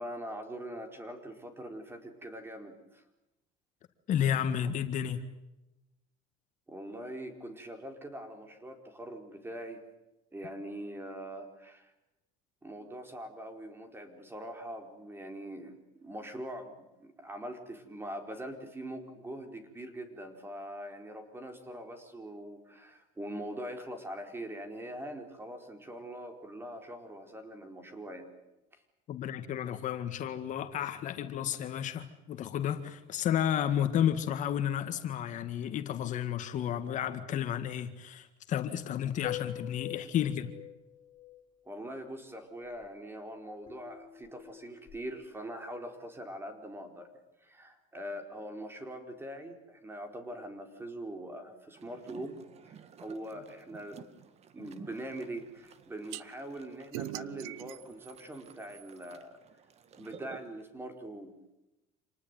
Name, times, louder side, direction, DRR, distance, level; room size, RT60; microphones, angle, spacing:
voice 1, 0.0-3.0 6.7-9.8 10.3-11.9 12.6-28.3 28.7-28.8 41.7-47.1 47.4-52.4 52.6-54.1 54.5-59.4 60.0-61.3, right 1 dB, 15° right, 6 dB, 4.5 m, -43 dB
voice 2, 4.1-5.2 29.1-40.5, left 9 dB, 50° left, 8 dB, 1.9 m, -32 dB
sound 1, 39.2-41.4 43.7-45.2, left 12 dB, 30° left, 3.6 m, -44 dB
sound 2, 51.8-60.7, right 7 dB, 40° right, 2.0 m, -53 dB
sound 3, 56.1-56.2 56.9-59.1, right 16 dB, 90° right, 0.8 m, -42 dB
27.0 x 19.5 x 9.3 m, 0.96 s
cardioid pair, 115°, 16 cm